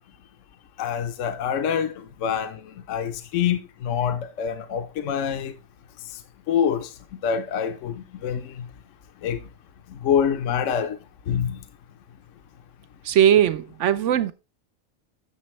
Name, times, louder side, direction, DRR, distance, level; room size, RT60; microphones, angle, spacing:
voice 1, 0.8-5.5 6.5-6.9 7.2-8.7 9.2-9.4 9.9-11.0 11.3-11.6, left 8 dB, 70° left, 1.1 m, -26 dB
voice 2, 13.0-14.3, right 10 dB, 70° right, 0.9 m, -19 dB
10.0 x 7.0 x 3.1 m
omnidirectional pair, 1.4 m